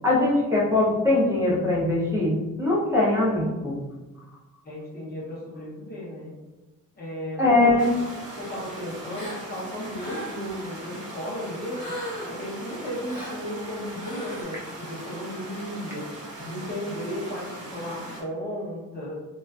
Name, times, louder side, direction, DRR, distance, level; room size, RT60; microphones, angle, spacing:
voice 1, 0.0-3.8 7.4-7.9, left 2 dB, 10° right, -6 dB, 0.5 m, -21 dB
voice 2, 4.6-6.3 6.9-7.7 8.4-11.9 12.3-16.1 16.4-19.1, equal, 30° left, -5 dB, 0.7 m, -34 dB
sound 1, 7.8-18.2, right 1 dB, 45° right, 0.8 m, -40 dB
Gasp, 9.1-9.4 9.9-10.5 11.7-12.4 13.1-13.4 13.9-14.4, equal, 60° left, 0.9 m, -37 dB
2.4 x 2.3 x 2.3 m, 1.1 s
cardioid pair, 170°, 33 cm